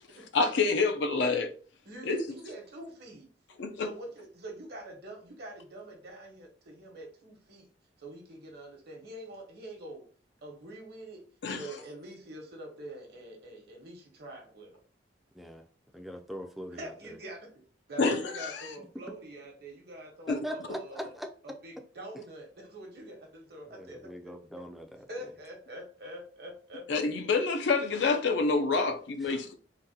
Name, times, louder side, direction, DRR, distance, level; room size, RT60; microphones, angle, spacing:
voice 1, 0.3-1.5 2.1-2.2 3.6-3.9 11.4-11.6 18.0-18.6 20.3-20.4 26.9-29.5, left 4 dB, 75° left, 0.4 m, -27 dB
voice 2, 1.8-3.3 3.8-7.7 8.0-10.0 10.4-11.3 11.5-14.8 16.7-17.5 17.9-21.1 21.4-24.4 25.1-26.8, right 1 dB, 65° right, 1.1 m, -45 dB
voice 3, 15.9-17.2 20.3-21.3 23.7-25.0 29.2-29.3, equal, ahead, 0.4 m, -41 dB
3.8 x 2.2 x 2.7 m
head